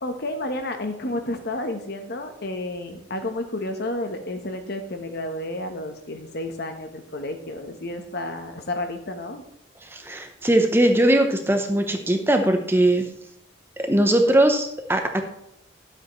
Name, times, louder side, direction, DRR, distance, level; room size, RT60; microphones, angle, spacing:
voice 1, 0.0-9.4, left 1 dB, 55° left, 6 dB, 1.0 m, -31 dB
voice 2, 9.9-13.1 13.8-15.2, right 1 dB, 10° right, 5 dB, 0.8 m, -20 dB
11.5 x 8.1 x 3.1 m, 0.76 s
head